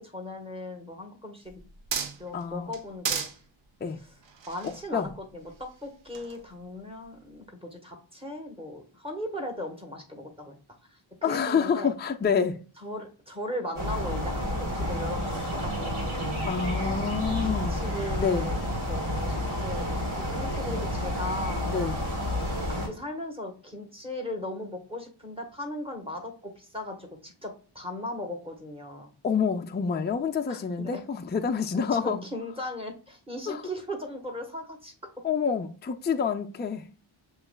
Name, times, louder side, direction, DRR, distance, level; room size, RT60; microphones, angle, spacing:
voice 1, 0.0-1.6 2.2-3.3 4.0-4.1 4.5-10.6 10.9-11.9 12.8-16.4 17.4-18.6 18.9-21.6 22.7-29.1 30.5-31.0 31.7-34.9, left 1 dB, 10° right, 1.2 m, -38 dB
sound 1, 1.4-2.4 2.7-3.4 4.2-5.7 6.1-6.4, right 6 dB, 65° right, 0.7 m, -34 dB
voice 2, 2.3-2.7 3.8-4.0 4.9-5.1 11.2-12.6 16.5-17.8 18.2-18.5 21.7-22.0 29.2-32.2 33.5-33.6 35.2-36.9, left 6 dB, 25° left, 0.4 m, -27 dB
sound 2, 13.7-22.9, left 1 dB, 85° right, 2.0 m, -30 dB
6.8 x 3.1 x 2.2 m
wide cardioid pair, 100°, 48 cm